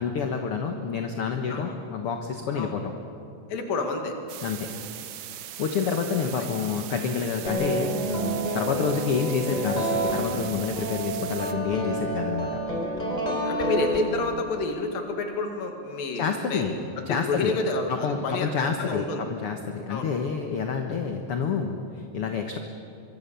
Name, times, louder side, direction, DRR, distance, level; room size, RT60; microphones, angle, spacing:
voice 1, 0.0-2.9 4.4-4.7 5.3-12.5 16.1-16.8 17.0-17.6 17.9-22.6, left 6 dB, 55° left, 4 dB, 1.6 m, -28 dB
voice 2, 3.5-4.2 6.3-6.4 13.3-16.7 17.0-18.5 18.8-19.3 19.9-20.1, left 3 dB, 75° left, 4 dB, 4.0 m, -29 dB
sound 1, 4.3-11.5, right 11 dB, 70° right, 1.7 m, -40 dB
sound 2, 7.5-14.6, right 1 dB, 10° left, 3.9 m, -29 dB
25.5 x 23.5 x 7.0 m, 2.7 s
omnidirectional pair, 4.1 m